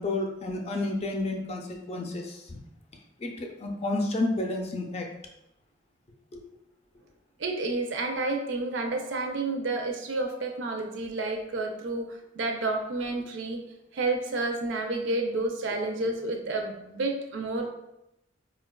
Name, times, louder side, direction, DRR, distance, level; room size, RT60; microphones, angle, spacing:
voice 1, 0.0-2.6 3.2-5.1 6.3-6.4, left 2 dB, 35° left, 2 dB, 0.4 m, -31 dB
voice 2, 7.4-12.1 12.4-13.6 13.9-17.7, right 2 dB, 75° right, 4 dB, 0.5 m, -30 dB
4.2 x 2.3 x 2.2 m, 0.86 s
head